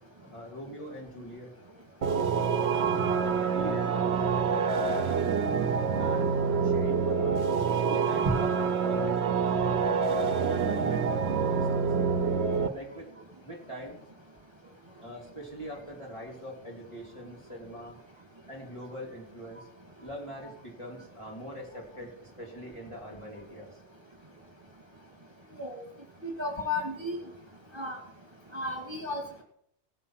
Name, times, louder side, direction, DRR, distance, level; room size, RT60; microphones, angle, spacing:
voice 1, 0.2-1.5 2.0-2.3 2.6-4.4 4.8-5.6 6.0-7.4 7.7-9.8 10.3-11.9 12.7-13.1 13.4-14.0 15.0-18.0 18.5-19.7 20.0-23.8, equal, 25° left, -3 dB, 3.3 m, -42 dB
sound 1, 2.0-12.7, right 5 dB, 65° right, 1.0 m, -27 dB
voice 2, 26.2-27.2 27.7-28.0 28.5-29.4, left 2 dB, 25° right, 0 dB, 2.4 m, -33 dB
18.0 x 7.5 x 5.8 m, 0.71 s
omnidirectional pair, 1.2 m